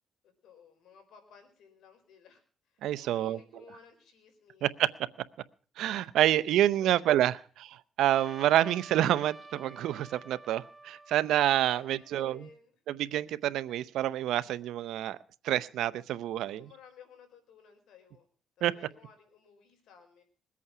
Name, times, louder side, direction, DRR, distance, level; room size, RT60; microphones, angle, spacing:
voice 1, 0.4-4.7 6.8-7.0 7.4-7.5 11.7-13.0 16.4-18.3 18.6-20.2, left 6 dB, 80° left, 6 dB, 4.3 m, -57 dB
voice 2, 2.8-3.4 4.6-4.9 5.8-12.4 12.9-15.2 15.4-16.7 18.6-18.7, right 12 dB, 85° right, 16 dB, 0.7 m, -28 dB
Trumpet, 8.1-12.5, right 2 dB, 15° right, 1.0 m, -51 dB
21.5 x 8.4 x 6.0 m, 0.42 s
cardioid pair, 90°, 0 cm